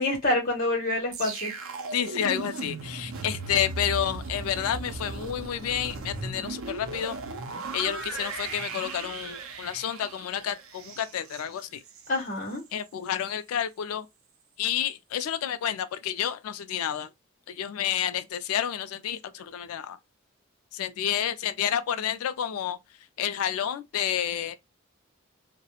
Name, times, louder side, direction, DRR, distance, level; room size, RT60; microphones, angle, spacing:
voice 1, 0.0-1.5 12.1-12.6, left 2 dB, 40° left, 0.8 m, -27 dB
sound 1, 1.1-12.2 12.5-12.8, right 3 dB, 80° right, 0.5 m, -37 dB
voice 2, 1.9-7.2 7.7-11.8 12.7-14.1 14.6-17.1 17.5-20.0 20.7-22.8 23.2-24.6, left 9 dB, 90° left, 0.3 m, -30 dB
2.3 x 2.0 x 2.8 m
head